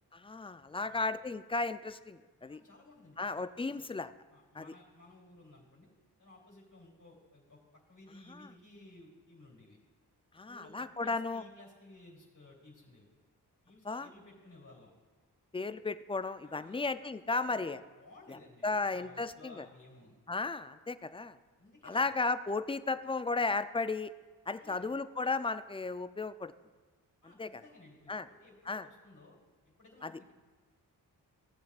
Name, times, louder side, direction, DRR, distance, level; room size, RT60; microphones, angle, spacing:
voice 1, 0.1-2.6 3.2-4.1 4.5-4.6 8.4-8.5 10.3-11.4 13.8-14.1 15.5-17.8 18.3-18.4 18.6-19.6 20.3-21.4 21.8-24.1 24.5-26.5 27.4-27.5 28.1-28.3 28.7-28.9 30.0-30.1, left 3 dB, 15° left, 12 dB, 0.3 m, -34 dB
voice 2, 0.8-1.1 2.4-3.8 4.3-5.9 6.2-9.8 10.5-13.1 13.6-14.9 16.4-16.8 17.2-20.1 21.6-22.0 24.5-24.8 27.2-29.4 29.7-30.3, left 2 dB, 50° left, -3 dB, 3.0 m, -57 dB
17.5 x 7.1 x 2.4 m, 1.4 s
cardioid pair, 55°, 39 cm